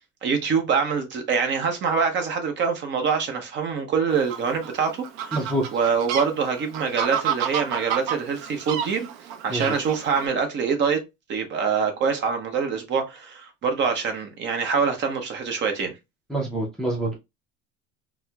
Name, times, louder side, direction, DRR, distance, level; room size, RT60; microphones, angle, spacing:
voice 1, 0.2-5.4 5.7-9.1 9.4-11.0 11.3-15.9, right 6 dB, 40° right, 0.8 m, -25 dB
Fowl, 4.1-10.3, right 8 dB, 85° right, 0.6 m, -30 dB
voice 2, 5.3-5.6 9.5-9.7 16.3-17.2, right 1 dB, ahead, 0.5 m, -26 dB
4.1 x 2.1 x 2.2 m
cardioid pair, 140°, 29 cm